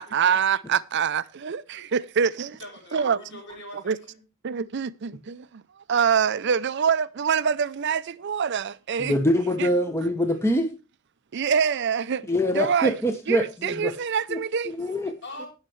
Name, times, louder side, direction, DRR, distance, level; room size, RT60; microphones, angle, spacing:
voice 1, 0.0-2.6 2.9-3.2 3.9-4.0 4.4-9.1 9.6-9.7 11.3-12.2 12.5-12.9 13.3-14.7, right 7 dB, 60° right, 0.5 m, -25 dB
voice 2, 2.6-4.2 15.2-15.5, left 1 dB, 60° left, 6.7 m, -42 dB
voice 3, 9.0-10.7 12.3-13.9 14.3-14.4 14.7-15.1, equal, 15° left, 1.0 m, -24 dB
19.0 x 6.5 x 3.1 m
head